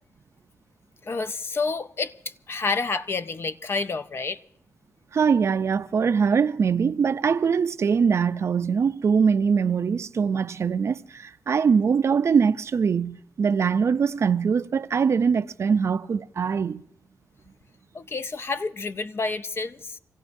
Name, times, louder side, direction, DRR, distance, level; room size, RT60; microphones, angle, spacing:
voice 1, 1.0-4.4 17.9-20.0, left 4 dB, 45° left, 0.7 m, -29 dB
voice 2, 5.1-16.8, right 6 dB, 50° right, 0.5 m, -22 dB
26.5 x 15.5 x 2.7 m
cardioid pair, 70°, 6 cm